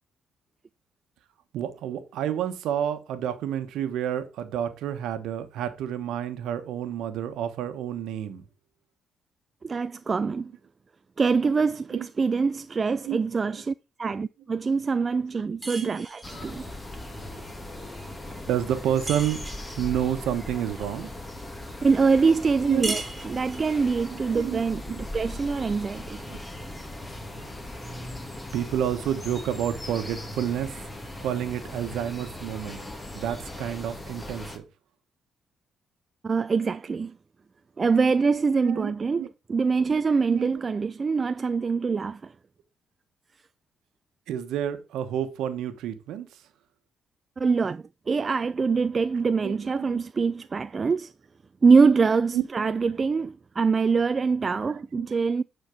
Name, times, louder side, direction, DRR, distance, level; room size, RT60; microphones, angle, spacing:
voice 1, 1.5-8.4 11.9-12.1 13.0-13.2 14.0-14.1 15.8-16.0 18.5-19.4 19.8-21.1 22.6-22.9 24.3-25.0 26.3-26.4 28.5-30.7 31.2-32.8 33.1-34.6 38.6-38.9 39.2-39.3 40.3-40.6 44.3-46.3 49.4-50.0 52.3-52.4 54.9-55.1, right 10 dB, 85° right, 1.2 m, -29 dB
voice 2, 9.6-10.5 11.2-16.6 21.8-26.2 36.2-37.1 37.8-39.2 39.5-42.3 47.4-51.1 51.6-55.4, right 5 dB, 35° right, 0.3 m, -24 dB
sound 1, 15.6-16.5 19.1-19.8 22.8-23.8, right 2 dB, 15° right, 3.1 m, -36 dB
sound 2, 16.2-34.6, left 1 dB, 15° left, 1.8 m, -39 dB
9.4 x 4.4 x 5.0 m
cardioid pair, 90°, 0 cm